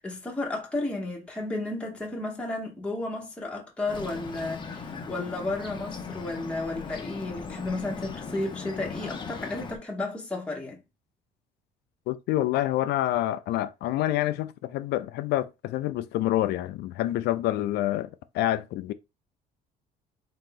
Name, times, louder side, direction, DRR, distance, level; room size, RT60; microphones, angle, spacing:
voice 1, 0.0-10.8, left 2 dB, 5° left, 1.1 m, -33 dB
Bird, 3.9-9.8, left 5 dB, 30° left, 0.8 m, -38 dB
voice 2, 12.1-18.1 18.3-18.9, left 14 dB, 75° left, 0.4 m, -27 dB
3.8 x 2.7 x 3.8 m
cardioid pair, 110°, 17 cm